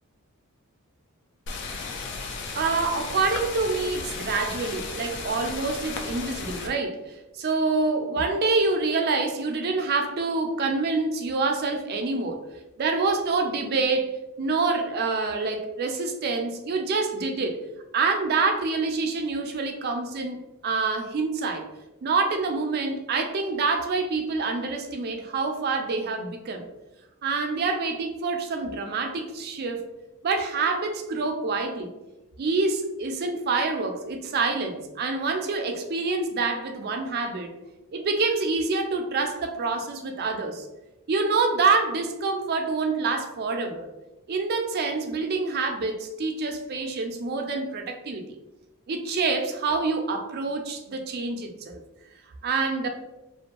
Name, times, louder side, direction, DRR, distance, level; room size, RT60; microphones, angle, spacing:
sound 1, 1.5-6.7, left 4 dB, 55° left, 0.4 m, -35 dB
voice 1, 2.5-7.0 7.3-12.4 12.8-14.1 14.4-17.6 17.9-21.7 22.0-26.7 27.2-29.8 30.2-31.9 32.4-37.5 37.9-40.7 41.1-43.9 44.3-48.3 48.9-51.8 52.4-52.9, right 3 dB, 45° right, 4 dB, 0.4 m, -26 dB
2.5 x 2.1 x 2.9 m, 0.99 s
head